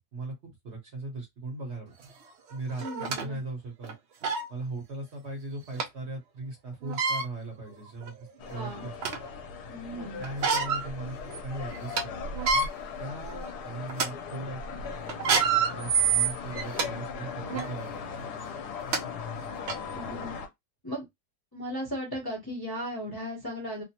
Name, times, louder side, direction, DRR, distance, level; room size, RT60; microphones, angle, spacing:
voice 1, 0.1-1.9 2.5-3.9 4.5-9.2 9.9-12.7 13.0-14.9 15.7-18.3, right 2 dB, 50° right, 1.1 m, -39 dB
sound 1, 2.0-2.1 2.8-3.2 3.8-3.9 4.2-4.5 5.8-5.9 6.8-7.2 8.0-8.1 8.6-9.3 10.2-10.9 11.3-11.4 11.7-12.0 12.3-12.7 13.3-13.5 13.9-14.1 15.1-16.9 17.5-17.7 18.5-18.6 18.9-19.0 19.7-19.8, right 6 dB, 70° right, 0.6 m, -26 dB
voice 2, 2.8-3.4 8.5-8.8 9.7-10.2 19.9-20.4 20.8-21.0 21.5-23.8, equal, 20° left, 0.7 m, -36 dB
sound 2, 8.4-20.5, left 5 dB, 85° left, 1.2 m, -39 dB
2.9 x 2.0 x 2.8 m
omnidirectional pair, 1.7 m